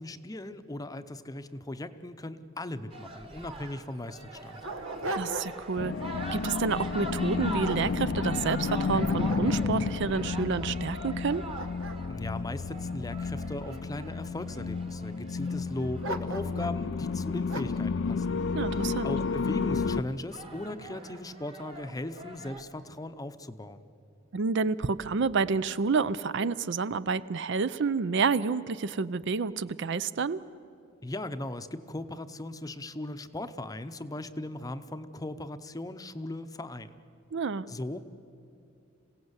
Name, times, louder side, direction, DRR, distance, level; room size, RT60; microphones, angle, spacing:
voice 1, 0.0-4.6 12.1-18.4 18.7-23.9 31.0-37.0 37.7-38.0, left 1 dB, 20° left, 10 dB, 0.7 m, -38 dB
sound 1, 2.9-17.1 18.6-18.8 19.1-19.6 20.1-22.6, right 2 dB, 30° right, 1.5 m, -43 dB
Dog, 3.5-3.6 4.2-5.8 6.2-6.5 7.1-8.6 9.0-10.0 10.5-10.6 11.1-13.4 14.1-14.7 16.0-16.8 17.5-17.9, right 2 dB, 90° right, 1.3 m, -39 dB
voice 2, 5.1-11.4 18.5-19.1 24.3-30.4 37.3-37.7, right 5 dB, 65° right, 16 dB, 0.5 m, -29 dB
sound 2, 5.8-20.0, left 4 dB, 65° left, 0.5 m, -31 dB
26.5 x 17.0 x 8.1 m, 2.6 s
head